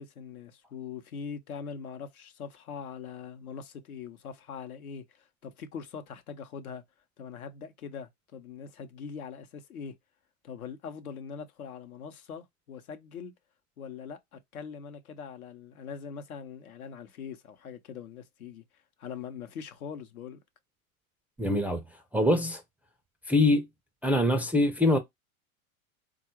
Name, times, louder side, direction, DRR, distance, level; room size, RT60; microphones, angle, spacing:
voice 1, 0.0-6.8 7.2-9.9 10.4-13.3 13.8-18.6 19.0-20.4, left 6 dB, 85° left, 0.8 m, -42 dB
voice 2, 21.4-21.8 22.1-22.6 23.3-23.7 24.0-25.0, left 1 dB, 5° right, 0.3 m, -24 dB
3.7 x 2.3 x 4.4 m
hypercardioid pair, 95°, 43 cm